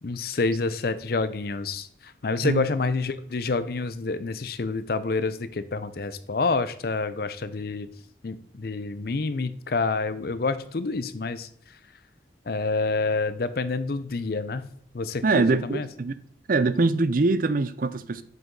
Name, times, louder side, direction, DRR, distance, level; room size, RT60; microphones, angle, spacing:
voice 1, 0.0-7.9 8.2-11.8 12.5-14.7 14.9-15.9, left 3 dB, 55° left, 0.6 m, -28 dB
voice 2, 15.2-16.1 16.5-18.2, right 3 dB, 50° right, 0.5 m, -23 dB
7.7 x 5.1 x 3.9 m
head